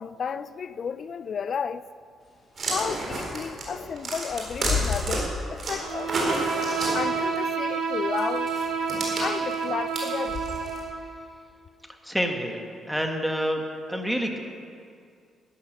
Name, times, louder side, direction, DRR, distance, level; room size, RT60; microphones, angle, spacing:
voice 1, 0.0-1.9 2.7-6.1 6.9-8.5 9.2-10.4, left 6 dB, 50° left, 0.4 m, -32 dB
Bird / Wind, 2.2-10.9, left 4 dB, 35° left, 3.1 m, -36 dB
sound 1, 2.5-5.2 5.6-7.4 8.2-10.8, right 2 dB, 50° right, 3.9 m, -31 dB
Bowed string instrument, 5.8-11.0, right 5 dB, 85° right, 4.2 m, -29 dB
voice 2, 12.0-12.6 12.9-14.4, equal, ahead, 1.6 m, -27 dB
12.5 x 9.9 x 6.5 m
cardioid pair, 90°, 0 cm